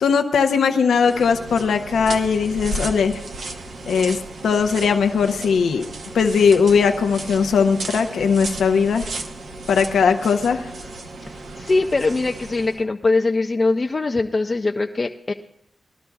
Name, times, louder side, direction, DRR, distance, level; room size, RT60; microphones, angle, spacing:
voice 1, 0.0-3.2 3.9-5.8 6.1-9.1 9.7-10.7, left 6 dB, 85° left, 6 dB, 0.6 m, -19 dB
sound 1, 0.9-12.8, right 2 dB, 80° right, 1.0 m, -34 dB
voice 2, 11.2-15.3, left 3 dB, 45° left, 3 dB, 0.5 m, -22 dB
19.0 x 12.0 x 2.3 m, 0.74 s
supercardioid pair, 45°, 0 cm